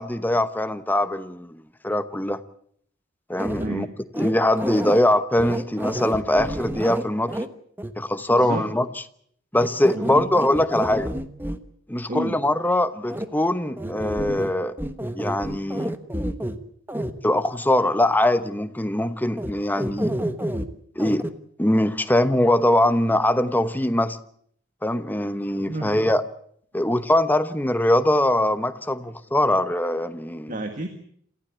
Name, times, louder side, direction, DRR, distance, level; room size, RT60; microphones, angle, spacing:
voice 1, 0.0-2.4 3.3-3.9 4.2-7.4 8.0-8.9 9.5-11.1 11.9-14.7 15.1-15.9 17.2-20.1 21.0-21.3 21.6-24.2 24.8-26.2 26.7-30.6, left 1 dB, 10° left, 11 dB, 1.0 m, -22 dB
sound 1, 3.4-3.7 4.1-5.0 5.4-7.5 7.8-7.9 9.6-11.6 13.1-13.2 13.8-14.5 14.8-16.6 16.9-17.1 19.4-19.5 19.8-20.6 21.0-21.3, right 1 dB, 10° right, 1.2 m, -29 dB
voice 2, 3.6-3.9 8.3-8.7 9.9-10.2 12.1-12.3 25.7-26.0 30.5-30.9, right 1 dB, 45° right, 6 dB, 1.8 m, -30 dB
28.0 x 15.0 x 8.3 m, 0.65 s
head